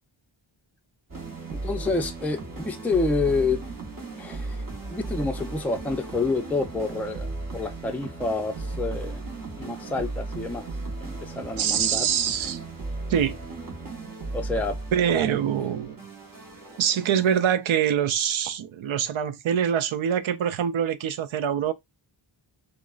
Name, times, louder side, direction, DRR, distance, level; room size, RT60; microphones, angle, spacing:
sound 1, 1.1-17.9, right 3 dB, 40° right, 1.0 m, -36 dB
voice 1, 1.5-3.6 4.2-4.6 4.9-9.2 9.6-10.7 11.0-12.0 12.4-12.5 14.3-14.8 15.1-15.3 15.6-15.7, left 3 dB, 5° left, 0.4 m, -28 dB
voice 2, 11.6-12.6 13.1-13.4 14.9-16.0 16.8-21.7, right 9 dB, 70° right, 0.5 m, -24 dB
3.5 x 2.1 x 2.3 m
cardioid pair, 55°, 50 cm